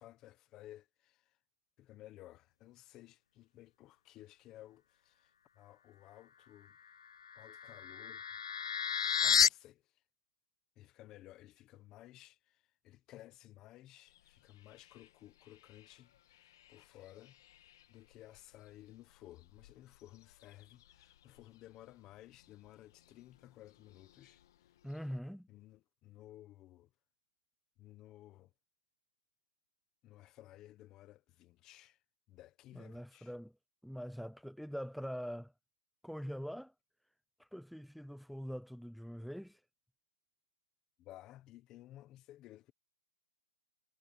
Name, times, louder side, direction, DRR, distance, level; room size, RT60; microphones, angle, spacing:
voice 1, 0.0-1.4 1.8-6.8 7.3-8.3 9.2-10.0 10.8-24.8 25.5-26.9 27.8-28.5 30.0-32.0 32.3-33.3 41.0-42.7, left 14 dB, 15° left, 1.2 m, -56 dB
sound 1, 7.2-9.5, left 7 dB, 70° left, 0.4 m, -31 dB
sound 2, 14.1-25.2, left 12 dB, 40° left, 2.2 m, -66 dB
voice 2, 24.8-25.5 32.7-33.5 33.8-35.5 36.0-36.7 37.4-39.6, equal, ahead, 0.8 m, -43 dB
hypercardioid pair, 170°, 3 cm